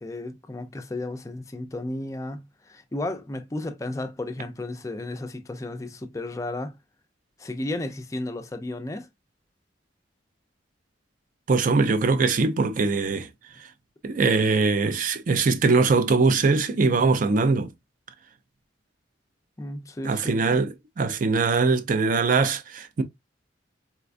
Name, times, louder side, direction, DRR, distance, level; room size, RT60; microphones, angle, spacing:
voice 1, 0.0-6.8 7.4-9.1 19.6-20.4, left 2 dB, 15° left, 0.4 m, -33 dB
voice 2, 11.5-13.3 14.0-17.7 20.0-23.0, right 4 dB, 45° right, 0.4 m, -22 dB
4.1 x 2.3 x 2.4 m
head